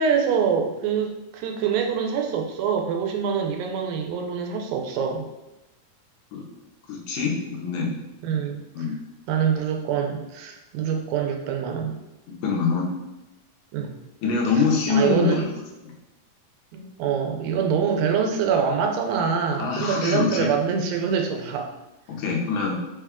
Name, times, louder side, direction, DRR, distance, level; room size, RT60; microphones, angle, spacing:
voice 1, 0.0-5.3 7.8-7.9 8.2-8.9 9.3-12.0 13.7-13.9 14.6-15.4 16.7-21.7, right 7 dB, 90° right, 2 dB, 2.3 m, -25 dB
voice 2, 6.9-7.9 8.8-9.0 12.4-12.9 14.2-15.5 19.6-20.5 22.1-22.7, left 5 dB, 75° left, -1 dB, 1.7 m, -24 dB
5.2 x 2.2 x 3.5 m, 0.97 s
omnidirectional pair, 3.9 m